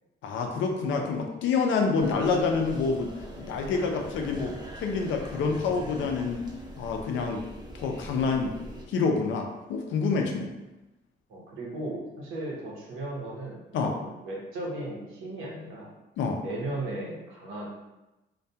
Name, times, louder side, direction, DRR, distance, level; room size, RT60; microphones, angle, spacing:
voice 1, 0.2-4.5 4.8-6.4 6.8-7.4 7.7-8.5 8.9-10.5 13.7-14.0 16.2-16.4, left 4 dB, 75° left, 3 dB, 0.4 m, -27 dB
sound 1, 2.0-8.8, equal, 20° right, 0.6 m, -42 dB
voice 2, 11.3-15.9 16.4-17.7, right 2 dB, 90° right, -3 dB, 0.8 m, -36 dB
2.2 x 2.2 x 2.7 m, 1.0 s
cardioid pair, 90°, 20 cm